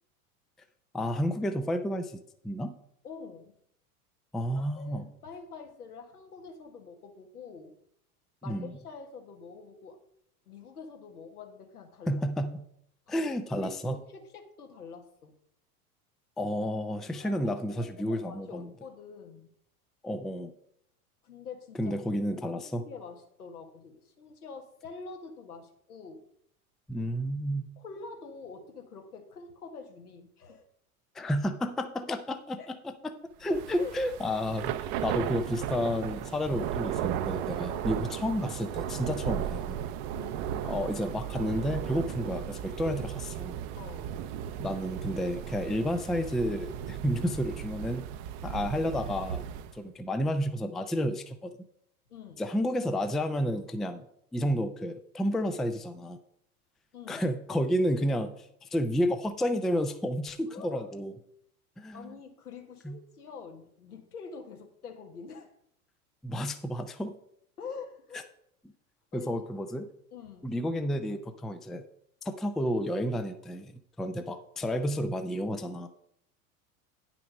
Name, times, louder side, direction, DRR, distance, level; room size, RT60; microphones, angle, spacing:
voice 1, 0.9-2.7 4.3-5.1 8.5-8.7 12.1-12.6 13.1-14.0 16.4-18.7 20.0-20.5 21.8-22.9 26.9-27.7 31.1-33.1 33.4-39.8 40.6-43.5 44.5-48.1 48.4-49.4 49.7-51.6 52.4-54.1 54.3-56.2 57.1-61.1 61.8-62.1 62.8-63.0 66.2-67.2 69.1-69.9 70.4-71.8 72.2-73.7 74.0-75.9, equal, ahead, 8 dB, 0.4 m, -31 dB
voice 2, 3.0-3.6 4.6-7.8 8.4-10.0 10.4-12.2 13.1-15.3 17.1-17.3 17.7-19.5 21.2-21.9 22.3-26.3 27.8-30.6 32.6-32.7 33.8-34.0 37.7-37.9 40.1-40.5 43.8-44.2 49.9-50.0 52.1-52.4 56.9-57.2 60.5-60.8 61.9-65.5 67.6-68.3 69.1-69.3 70.1-70.5, left 5 dB, 80° left, 4 dB, 1.7 m, -46 dB
Thunder / Rain, 33.5-49.8, right 10 dB, 45° right, 0.7 m, -35 dB
9.5 x 6.0 x 5.2 m, 0.70 s
figure-of-eight pair, 85°, 45 cm